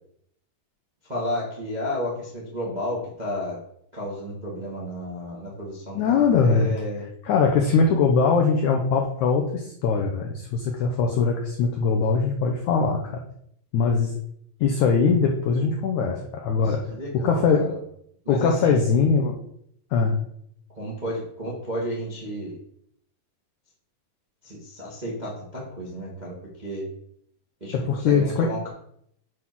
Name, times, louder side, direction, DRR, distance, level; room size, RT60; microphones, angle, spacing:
voice 1, 1.0-3.6 3.9-7.0 16.5-17.8 18.2-18.8 20.8-22.6 24.4-26.8 27.6-28.7, equal, 30° right, -5 dB, 0.7 m, -32 dB
voice 2, 5.9-6.7 7.2-13.2 13.7-14.1 14.6-16.8 17.1-17.6 18.3-19.4 19.9-20.2 27.7-28.5, left 5 dB, 90° left, 2 dB, 1.7 m, -21 dB
8.1 x 3.8 x 6.0 m, 0.69 s
omnidirectional pair, 4.5 m